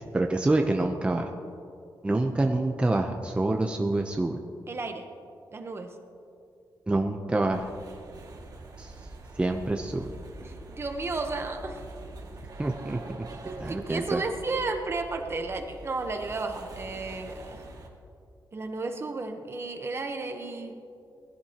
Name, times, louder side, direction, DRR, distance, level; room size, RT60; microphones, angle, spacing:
voice 1, 0.1-1.3 2.0-4.4 6.9-7.7 8.8-8.9 9.4-10.1 12.6-13.0 13.6-14.2, right 2 dB, 15° right, 3 dB, 0.6 m, -26 dB
voice 2, 4.7-5.1 5.5-6.0 10.4-11.8 13.4-17.6 18.5-20.8, right 3 dB, 35° right, 5 dB, 1.0 m, -33 dB
sound 1, 7.5-17.9, right 2 dB, 55° right, 2.1 m, -45 dB
20.0 x 15.5 x 2.9 m, 2.5 s
wide cardioid pair, 145°, 8 cm